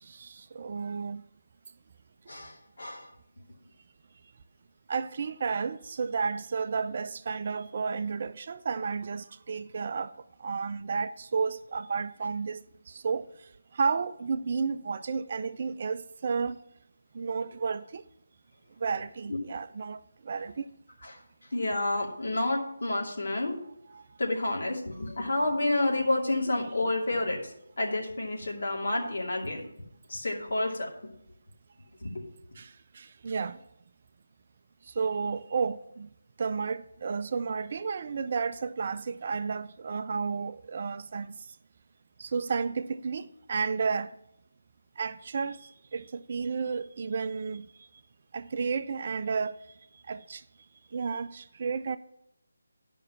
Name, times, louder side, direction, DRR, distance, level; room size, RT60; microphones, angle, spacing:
voice 1, 0.0-1.2 4.9-10.1 10.4-13.3 13.7-16.6 17.1-18.0 18.8-20.7 23.9-24.1 32.6-33.6 34.9-36.1 36.4-41.4 42.2-44.1 45.0-47.7 48.3-49.5 50.1-50.4 50.9-52.0, right 5 dB, 40° right, 0.4 m, -32 dB
voice 2, 2.3-3.1 19.3-19.4 21.0-21.2 21.5-23.6 24.2-29.6 30.1-30.9 32.0-32.1, left 2 dB, 60° left, 2.6 m, -29 dB
11.5 x 5.5 x 6.0 m
figure-of-eight pair, 155°, 0 cm